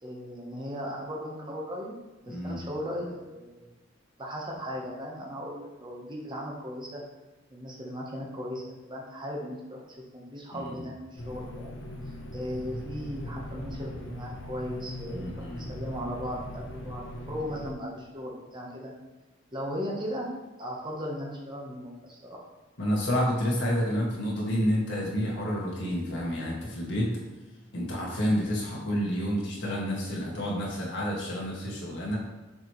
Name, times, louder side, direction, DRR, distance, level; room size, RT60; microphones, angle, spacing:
voice 1, 0.0-1.9 2.2-3.7 4.2-7.0 7.5-9.8 10.1-11.8 12.3-18.9 19.5-20.3 20.6-22.4, equal, 25° right, -2 dB, 1.1 m, -37 dB
voice 2, 2.3-2.6 10.5-10.9 15.1-15.6 22.8-27.1 27.7-32.2, equal, 65° left, -3 dB, 1.8 m, -29 dB
sound 1, 11.2-17.7, equal, 80° left, 0.9 m, -40 dB
6.6 x 4.7 x 3.1 m, 1.1 s
head